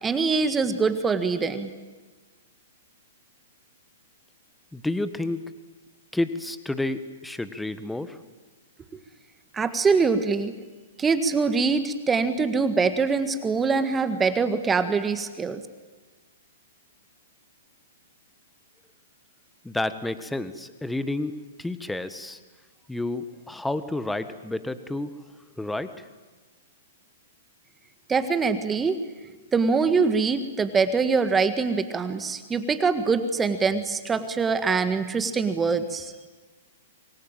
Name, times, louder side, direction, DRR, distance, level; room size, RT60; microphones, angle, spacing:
voice 1, 0.0-1.7 9.5-10.5 11.0-15.6 28.1-29.0 29.5-36.1, right 4 dB, 15° right, 10 dB, 1.8 m, -24 dB
voice 2, 4.7-5.4 6.1-8.2 19.6-21.3 21.6-22.4 22.9-25.1 25.6-25.9, left 2 dB, 5° left, 12 dB, 1.5 m, -30 dB
26.0 x 22.0 x 9.1 m, 1.3 s
hypercardioid pair, 120°, 0 cm